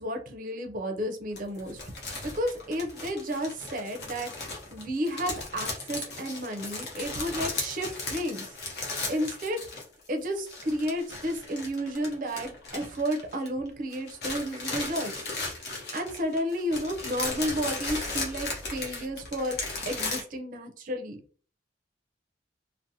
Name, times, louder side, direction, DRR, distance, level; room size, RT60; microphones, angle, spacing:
voice 1, 0.0-1.8 2.2-4.3 4.7-8.4 9.1-9.6 10.1-15.2 15.9-19.6 19.8-21.2, equal, 45° right, 4 dB, 0.5 m, -32 dB
sound 1, 1.4-10.1 10.3-13.7 13.9-20.2, left 3 dB, 60° left, 0.8 m, -36 dB
2.6 x 2.1 x 2.7 m, 0.42 s
head